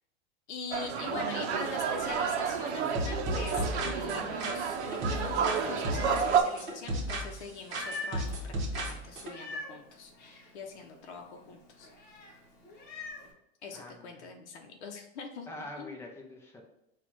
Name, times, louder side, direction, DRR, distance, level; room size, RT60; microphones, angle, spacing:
voice 1, 0.5-11.9 13.6-16.1, left 4 dB, 90° left, 2 dB, 0.7 m, -43 dB
sound 1, 0.7-6.4, right 6 dB, 80° right, 0.6 m, -30 dB
Meow, 1.3-13.3, left 2 dB, 30° left, 1.0 m, -48 dB
sound 2, 2.9-5.6 5.8-7.4 7.7-9.3, right 1 dB, 35° right, 1.1 m, -34 dB
voice 2, 13.7-14.3 15.5-16.6, left 1 dB, 10° left, 1 dB, 0.4 m, -45 dB
4.2 x 2.4 x 4.5 m, 0.84 s
supercardioid pair, 145°, 33 cm